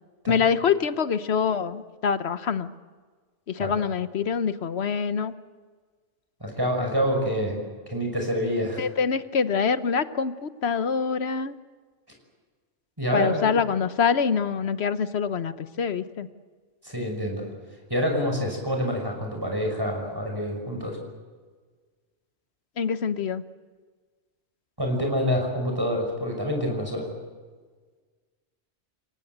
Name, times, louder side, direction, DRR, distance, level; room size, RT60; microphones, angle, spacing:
voice 1, 0.3-2.7 3.5-5.3 8.8-11.5 13.1-16.3 22.8-23.4, left 6 dB, 65° left, 12 dB, 1.2 m, -25 dB
voice 2, 6.4-7.6 7.9-8.8 13.0-13.5 16.8-17.5 17.9-21.0 24.8-27.1, equal, 20° right, 1 dB, 5.7 m, -27 dB
30.0 x 17.5 x 8.0 m, 1.5 s
omnidirectional pair, 1.2 m